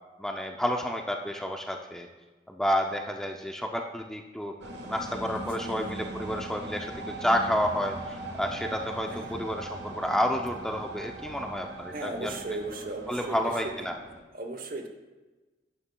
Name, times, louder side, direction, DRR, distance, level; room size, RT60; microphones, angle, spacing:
voice 1, 0.2-2.1 2.5-4.5 4.8-6.9 7.2-12.3 13.1-14.0, equal, 5° left, 3 dB, 0.4 m, -30 dB
sound 1, 4.6-14.2, right 2 dB, 75° right, 1.3 m, -40 dB
voice 2, 5.3-5.9 9.1-9.4 11.9-13.7 14.3-14.9, right 2 dB, 50° right, 6 dB, 0.9 m, -37 dB
11.0 x 9.9 x 2.2 m, 1.2 s
head